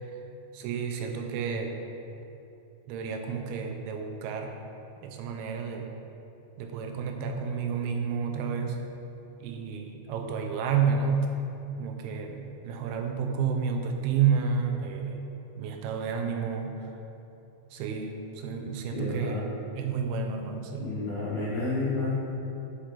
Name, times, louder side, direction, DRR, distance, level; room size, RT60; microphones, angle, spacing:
voice 1, 0.5-1.8 2.9-4.6 5.0-5.9 6.6-8.8 9.4-11.3 11.8-15.2 15.6-16.9 17.7-19.4 19.8-20.9, right 6 dB, 85° right, 3 dB, 2.5 m, -30 dB
voice 2, 18.9-19.5 20.8-22.1, left 3 dB, 55° left, -10 dB, 2.0 m, -31 dB
5.9 x 5.7 x 5.0 m, 2.8 s
omnidirectional pair, 4.5 m